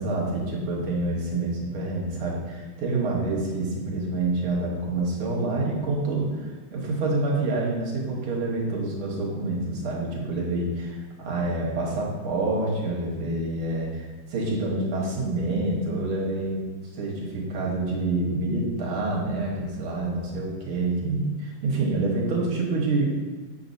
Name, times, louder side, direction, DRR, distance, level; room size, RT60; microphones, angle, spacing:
voice 1, 0.0-23.2, right 2 dB, 85° right, -2 dB, 2.1 m, -27 dB
7.4 x 5.7 x 2.6 m, 1.3 s
omnidirectional pair, 2.3 m